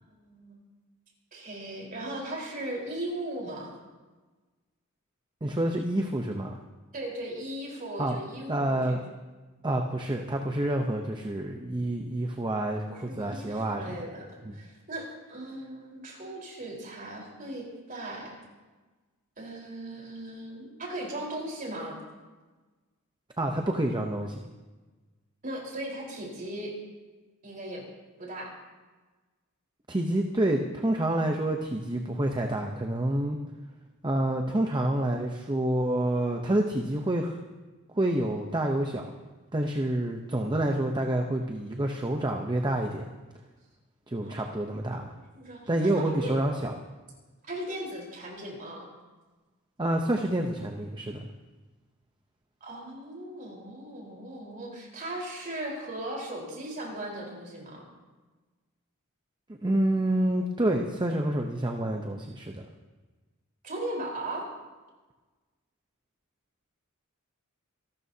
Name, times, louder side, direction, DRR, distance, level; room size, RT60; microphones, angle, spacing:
voice 1, 0.1-0.6 1.3-3.7 6.9-9.0 12.9-18.4 19.4-22.0 25.4-26.7 27.4-27.8 28.2-28.5 44.2-44.4 44.9-46.3 47.4-48.9 52.6-57.9 63.6-64.4, right 1 dB, 40° right, -2 dB, 4.3 m, -38 dB
voice 2, 5.4-6.5 8.0-8.2 8.5-9.0 9.6-13.9 14.4-14.5 23.4-24.4 29.9-33.4 34.0-37.4 37.9-39.1 39.5-43.0 44.1-45.1 45.7-46.7 49.8-51.3 59.5-62.6, right 1 dB, 20° right, 3 dB, 0.8 m, -28 dB
26.5 x 12.5 x 2.8 m, 1.3 s
head